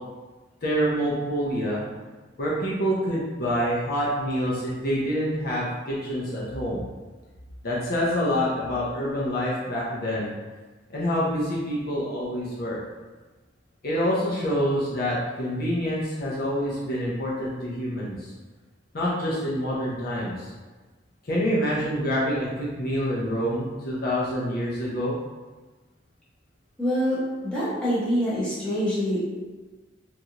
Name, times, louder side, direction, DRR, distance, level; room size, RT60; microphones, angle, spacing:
voice 1, 0.6-1.8 2.4-6.8 7.6-10.3 10.9-12.8 13.8-18.3 18.9-20.5 21.2-25.1, equal, 50° left, -6 dB, 0.6 m, -26 dB
voice 2, 26.8-27.2 27.4-29.2, equal, 5° left, -10 dB, 1.0 m, -25 dB
3.1 x 2.5 x 2.8 m, 1.3 s
head